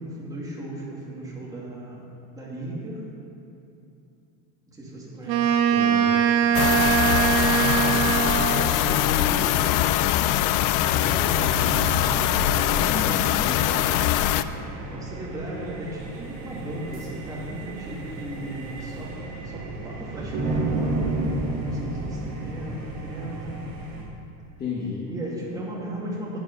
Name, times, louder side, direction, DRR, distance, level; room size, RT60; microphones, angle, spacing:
voice 1, 0.0-3.0 4.7-5.6 8.1-9.7 10.9-11.8 12.0-13.0 14.9-19.1 19.4-21.1 21.6-23.6 25.1-26.4, right 1 dB, 10° right, -5 dB, 2.4 m, -36 dB
Wind instrument woodwind instrument, 5.3-8.8, right 8 dB, 85° right, 1.1 m, -22 dB
voice 2, 5.7-6.4 12.9-13.9 24.6-25.1, left 4 dB, 25° left, -5 dB, 1.4 m, -32 dB
sound 1, 6.5-14.4, left 13 dB, 55° left, 0.5 m, -22 dB
sound 2, 7.7-24.0, right 2 dB, 60° right, 3.0 m, -33 dB
11.0 x 8.0 x 5.4 m, 2.7 s
cardioid pair, 145°, 38 cm